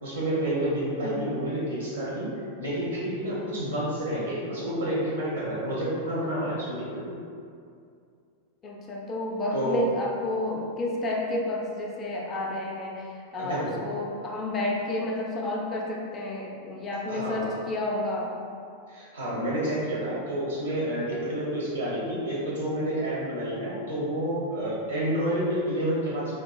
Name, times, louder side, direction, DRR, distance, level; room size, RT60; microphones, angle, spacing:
voice 1, 0.0-2.3 2.6-7.2 9.5-9.8 13.4-13.7 17.1-17.5 18.9-26.4, right 1 dB, 80° right, -7 dB, 0.8 m, -29 dB
voice 2, 1.0-1.5 8.6-18.3, left 1 dB, 25° left, -3 dB, 0.4 m, -30 dB
3.6 x 2.3 x 2.2 m, 2.4 s
figure-of-eight pair, 90°, 0 cm